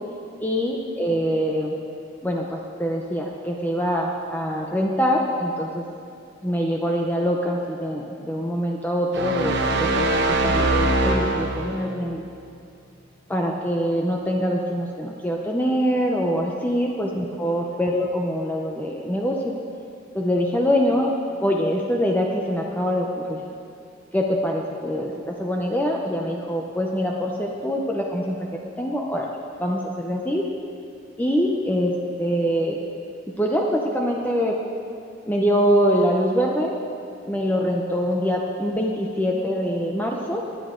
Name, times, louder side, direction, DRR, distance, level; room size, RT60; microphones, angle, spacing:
voice 1, 0.4-1.7 2.2-5.8 6.4-12.2 13.3-19.5 20.1-21.1 21.4-23.4 24.1-28.4 28.8-29.3 29.6-30.4 31.2-32.8 33.4-34.6 35.2-36.7 37.3-40.4, equal, 10° left, -1 dB, 0.7 m, -24 dB
sound 1, 9.1-11.9, right 2 dB, 60° right, 1.1 m, -22 dB
18.0 x 10.0 x 3.8 m, 2.5 s
head